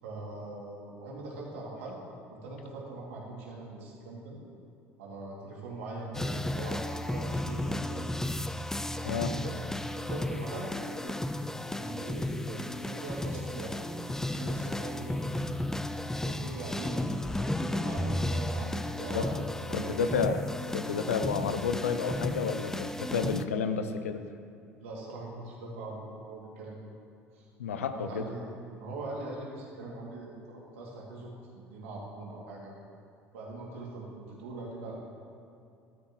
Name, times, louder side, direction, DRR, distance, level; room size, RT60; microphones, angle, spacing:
voice 1, 0.0-2.0 2.3-4.4 5.0-8.1 9.3-11.2 11.7-13.7 14.3-15.3 16.3-19.3 19.6-19.9 24.8-26.8 27.3-27.4 27.9-28.5 28.7-31.3 31.7-32.7 33.3-35.0, right 2 dB, 75° right, -4 dB, 2.6 m, -41 dB
sound 1, 6.1-23.5, left 1 dB, 5° left, 0.5 m, -34 dB
voice 2, 18.9-19.3 19.7-20.4 20.7-24.2 27.6-28.3, left 6 dB, 80° left, 9 dB, 0.6 m, -31 dB
14.0 x 12.0 x 3.1 m, 2.6 s
hypercardioid pair, 65°, 7 cm